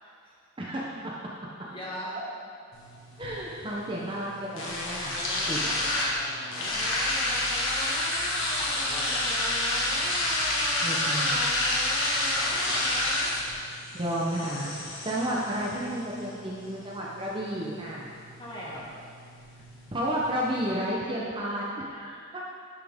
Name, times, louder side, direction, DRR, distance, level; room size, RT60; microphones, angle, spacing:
voice 1, 0.0-0.3 1.6-2.2 6.1-6.8 8.6-9.2 12.0-13.2 18.4-18.8, equal, 25° left, -7 dB, 1.7 m, -41 dB
voice 2, 0.6-1.2 3.2-5.6 10.8-11.5 13.9-18.1 19.9-22.4, equal, 25° right, -5 dB, 0.7 m, -32 dB
sound 1, 2.7-20.7, left 1 dB, 65° left, 1.5 m, -30 dB
10.5 x 5.8 x 3.6 m, 2.3 s
head